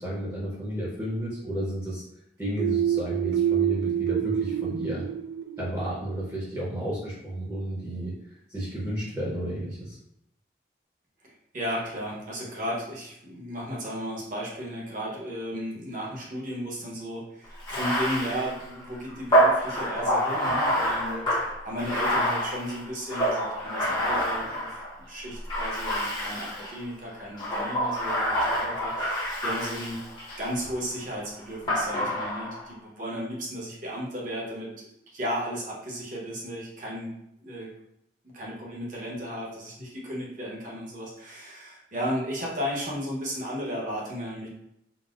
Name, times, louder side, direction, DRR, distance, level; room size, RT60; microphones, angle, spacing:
voice 1, 0.0-2.0 2.4-5.0 5.6-8.1 8.5-10.0, right 1 dB, 15° right, -7 dB, 0.7 m, -32 dB
sound 1, 2.6-6.2, right 10 dB, 90° right, 0.4 m, -27 dB
voice 2, 11.2-24.8 25.1-30.0 30.4-34.7 35.1-37.2 37.4-37.7 38.3-44.5, equal, 45° right, -3 dB, 0.9 m, -34 dB
Bathtub (filling or washing), 17.6-24.9 25.5-26.8 27.3-30.5 31.7-32.6, equal, 25° left, 0.8 m, -27 dB
3.9 x 2.1 x 2.3 m, 0.79 s
head